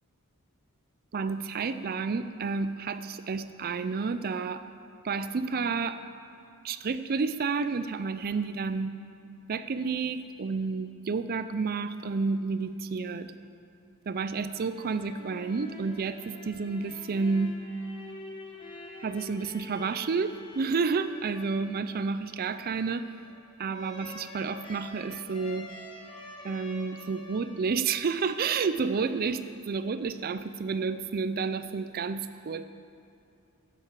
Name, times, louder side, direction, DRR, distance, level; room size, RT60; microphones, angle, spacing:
voice 1, 1.1-4.6 5.0-6.0 6.6-9.0 9.5-13.3 14.1-17.6 19.0-23.1 23.6-25.7 26.4-32.6, right 4 dB, 45° right, 12 dB, 0.4 m, -30 dB
sound 1, 14.5-29.1, left 1 dB, 20° left, 1.7 m, -47 dB
11.5 x 10.0 x 7.3 m, 2.5 s
head